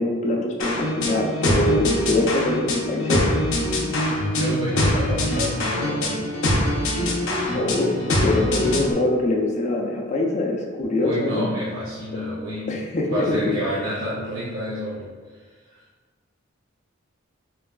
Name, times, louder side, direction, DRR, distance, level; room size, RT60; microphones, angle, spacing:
voice 1, 0.0-3.3 7.5-11.4 12.7-13.4, left 1 dB, 35° left, 0 dB, 0.4 m, -23 dB
sound 1, 0.6-8.9, left 1 dB, 80° left, 0.6 m, -23 dB
voice 2, 4.3-6.2 11.0-12.7 13.1-15.8, equal, 85° right, -8 dB, 0.6 m, -29 dB
4.5 x 2.3 x 2.2 m, 1.5 s
head